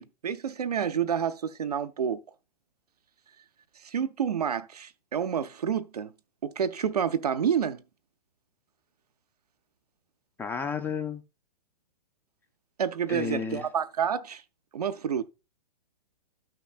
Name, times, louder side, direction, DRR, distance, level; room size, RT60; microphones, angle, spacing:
voice 1, 0.0-2.2 3.8-6.1 6.4-7.8 12.8-14.4 14.7-15.2, right 8 dB, 75° right, 0.6 m, -29 dB
voice 2, 10.4-11.2 13.1-13.7, left 6 dB, 10° left, 0.4 m, -32 dB
12.5 x 5.8 x 2.4 m
figure-of-eight pair, 115°, 20 cm